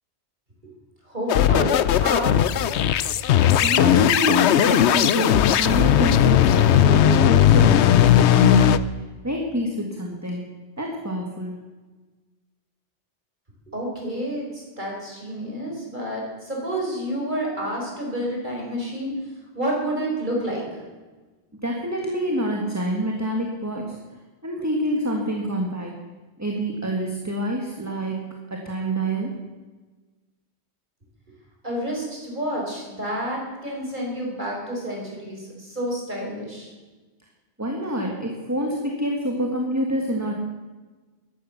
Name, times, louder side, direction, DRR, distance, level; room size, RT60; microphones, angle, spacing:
voice 1, 1.1-2.4 13.7-19.1 19.5-20.6 31.6-36.7, right 1 dB, 45° right, -2 dB, 4.9 m, -29 dB
sound 1, 1.3-8.8, left 10 dB, 85° left, 0.9 m, -17 dB
voice 2, 3.6-10.4 10.8-11.6 21.6-24.0 24.4-26.0 26.4-29.3 37.6-40.3, right 1 dB, 15° right, 1 dB, 1.7 m, -27 dB
13.5 x 11.5 x 7.1 m, 1.3 s
omnidirectional pair, 1.1 m